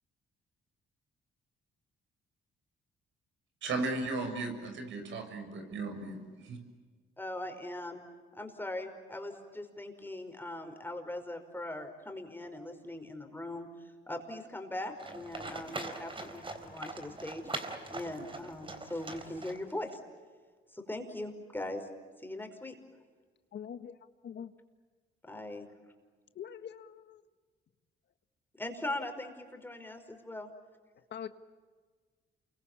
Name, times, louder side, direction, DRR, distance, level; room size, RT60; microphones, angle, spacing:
voice 1, 3.6-6.6, right 3 dB, 70° right, 6 dB, 6.6 m, -36 dB
voice 2, 7.2-8.0 8.3-17.6 17.9-20.0 20.7-21.9 22.2-22.8 25.2-25.7 28.6-30.5, left 1 dB, 10° left, 5 dB, 5.2 m, -40 dB
Livestock farm animals working animals, 15.0-19.9, right 2 dB, 25° right, 3.7 m, -42 dB
voice 3, 23.5-23.9 24.2-24.5 26.3-27.2 31.1-31.3, left 8 dB, 60° left, 10 dB, 1.6 m, -43 dB
28.5 x 23.5 x 8.7 m, 1.5 s
cardioid pair, 90°, 20 cm